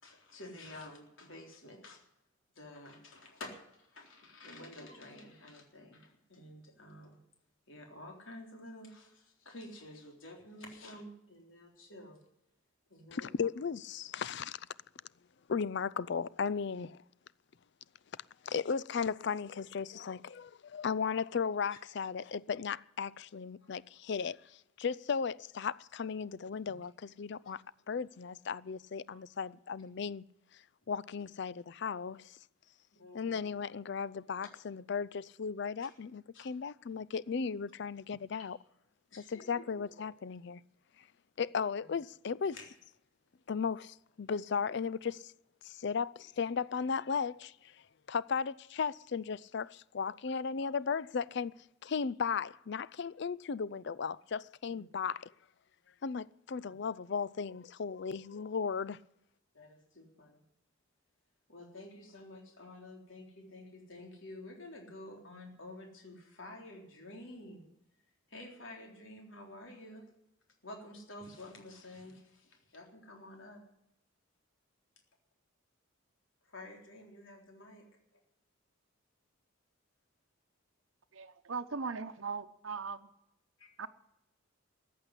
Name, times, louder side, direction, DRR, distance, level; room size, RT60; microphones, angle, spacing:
voice 1, 0.0-2.0 2.6-7.2 7.7-12.2 12.9-13.3 21.7-21.8 26.6-26.7 27.4-27.5 29.1-29.2 32.9-33.4 35.8-35.9 36.3-36.5 39.1-39.9 41.8-41.9 42.5-42.7 54.7-54.9 56.6-56.7 59.5-60.4 61.5-67.7 68.3-70.1 70.6-73.6 76.4-77.8 78.1-78.2 83.6-83.7, left 1 dB, 75° left, 3.7 m, -50 dB
voice 2, 13.1-14.6 15.5-17.0 18.4-30.2 30.9-32.4 33.1-38.6 39.3-40.6 41.4-42.6 43.5-45.3 45.6-47.7 48.1-51.5 51.8-55.3 56.0-59.0, left 6 dB, 60° left, 0.4 m, -36 dB
voice 3, 81.1-83.1 83.8-83.9, right 5 dB, 80° right, 0.9 m, -39 dB
14.5 x 8.5 x 9.9 m
head